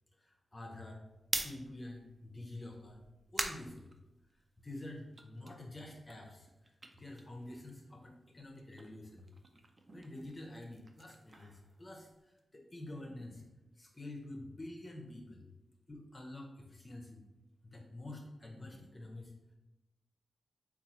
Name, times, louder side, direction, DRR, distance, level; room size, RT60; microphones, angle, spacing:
voice 1, 0.2-1.0 1.4-3.0 3.3-3.9 4.6-9.3 9.9-15.5 15.9-17.3 17.6-19.3, left 1 dB, 30° left, 0 dB, 0.5 m, -48 dB
sound 1, 1.1-4.6 5.0-8.0 8.3-12.4, right 2 dB, 40° right, 0.4 m, -44 dB
2.7 x 2.3 x 4.1 m, 1.0 s
cardioid pair, 60°, 0 cm